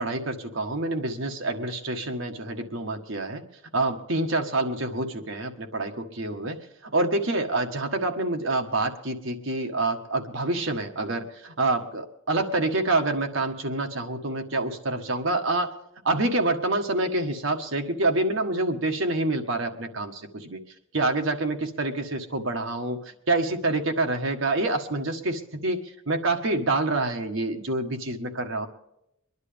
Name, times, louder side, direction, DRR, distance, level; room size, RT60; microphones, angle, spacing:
voice 1, 0.0-3.4 3.7-6.6 6.9-15.7 16.0-20.6 20.9-23.0 23.3-25.8 26.1-28.7, right 2 dB, 70° right, 4 dB, 1.6 m, -27 dB
24.0 x 11.0 x 3.5 m, 0.81 s
head